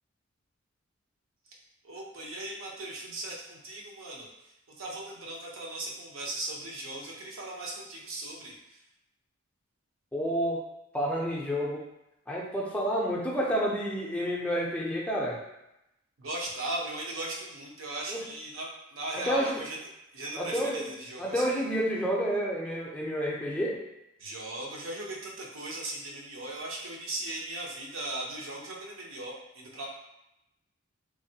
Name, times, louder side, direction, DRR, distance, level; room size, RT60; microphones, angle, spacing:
voice 1, 1.8-4.3 4.7-8.8 16.2-19.8 20.1-21.5 24.2-29.9, right 2 dB, 70° right, -3 dB, 0.7 m, -38 dB
voice 2, 10.1-10.6 10.9-11.9 12.3-15.4 18.1-18.3 19.1-19.6 20.4-20.9 21.2-23.8, equal, 5° left, -4 dB, 0.4 m, -29 dB
3.2 x 2.1 x 2.7 m, 0.87 s
head